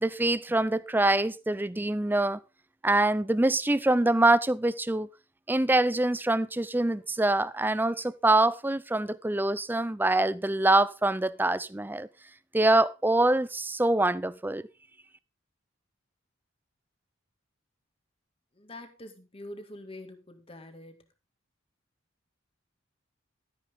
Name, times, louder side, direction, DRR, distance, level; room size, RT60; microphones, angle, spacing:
voice 1, 0.0-2.4 2.8-5.1 5.5-12.1 12.5-14.6, right 2 dB, 10° right, 0.5 m, -25 dB
voice 2, 18.5-21.1, left 1 dB, 30° left, 2.0 m, -45 dB
13.0 x 9.8 x 3.6 m
head